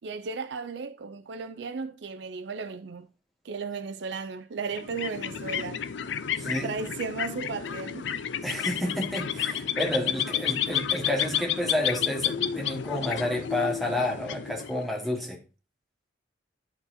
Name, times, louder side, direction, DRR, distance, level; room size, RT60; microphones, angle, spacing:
voice 1, 0.0-3.1 3.4-5.8 6.6-8.1, right 4 dB, 65° right, 0.4 m, -35 dB
sound 1, 4.7-15.1, left 9 dB, 65° left, 0.5 m, -31 dB
voice 2, 6.3-6.7 8.4-15.4, left 1 dB, ahead, 1.5 m, -30 dB
12.0 x 4.1 x 2.7 m
head